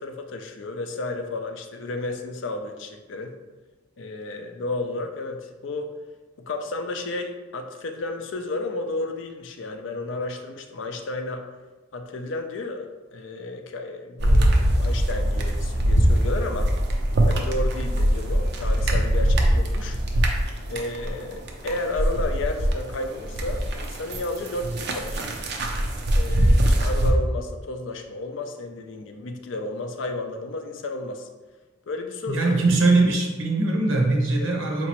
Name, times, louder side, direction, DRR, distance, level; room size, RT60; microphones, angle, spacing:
voice 1, 0.0-3.3 4.0-5.9 6.4-11.4 11.9-16.7 17.2-20.0 20.7-25.2 26.1-31.3 31.9-32.5 34.4-34.6, left 2 dB, 70° left, 5 dB, 0.4 m, -32 dB
sound 1, 14.2-22.8 23.1-27.1, right 1 dB, 55° right, 0.5 m, -22 dB
voice 2, 32.3-34.9, right 2 dB, 80° right, 0 dB, 0.8 m, -21 dB
4.4 x 2.9 x 2.9 m, 1.2 s
head